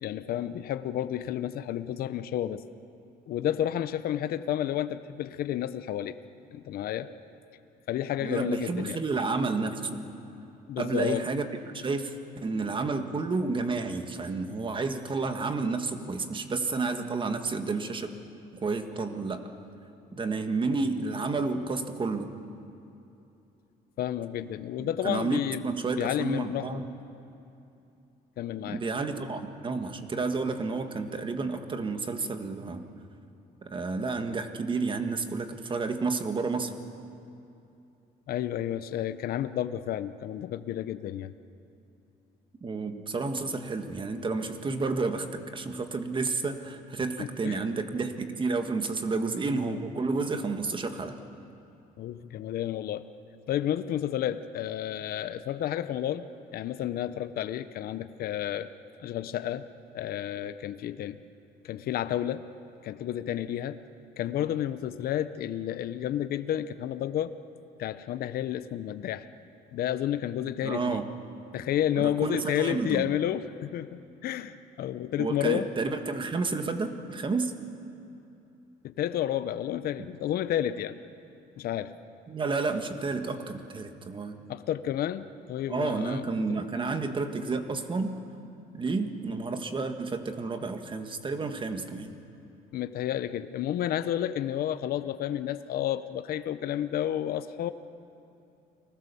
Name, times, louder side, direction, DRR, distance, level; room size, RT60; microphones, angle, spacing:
voice 1, 0.0-2.6 3.3-6.2 6.5-7.1 7.9-9.0 10.7-11.3 24.0-25.6 25.9-26.8 28.4-28.8 38.3-41.3 47.2-47.6 52.0-53.1 53.5-58.7 59.0-59.7 59.9-61.2 61.6-62.4 62.8-63.8 64.2-67.4 67.8-69.3 69.7-71.0 71.5-75.7 78.8-81.0 81.6-82.0 84.5-86.6 92.7-97.7, left 11 dB, 65° left, 12 dB, 0.8 m, -31 dB
voice 2, 8.2-10.1 10.8-11.5 11.7-18.1 18.5-19.4 20.1-22.4 24.8-26.9 28.7-32.8 33.6-36.7 42.6-51.2 70.6-71.1 71.9-73.1 75.2-77.5 82.3-84.4 85.7-88.2 88.7-92.1, right 3 dB, 30° right, 7 dB, 1.7 m, -31 dB
30.0 x 20.0 x 7.0 m, 2.7 s
cardioid pair, 110°, 17 cm